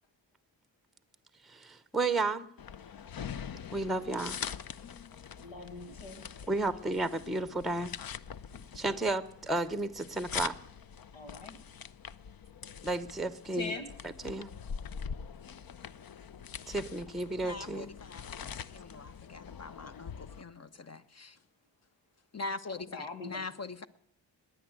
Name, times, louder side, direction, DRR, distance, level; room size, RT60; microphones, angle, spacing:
voice 1, 1.4-2.5 3.7-4.4 6.5-7.9 8.7-10.6 12.8-13.7 14.2-14.5 16.7-17.9, right 2 dB, ahead, 0.9 m, -32 dB
sound 1, 2.6-20.4, left 7 dB, 50° left, 0.8 m, -44 dB
voice 2, 5.4-6.3 11.1-11.6 13.5-13.9 22.8-23.5, left 3 dB, 85° left, 2.2 m, -42 dB
voice 3, 17.4-21.3 22.3-23.9, left 3 dB, 35° left, 1.1 m, -43 dB
20.0 x 9.2 x 7.9 m
cardioid pair, 50°, 45 cm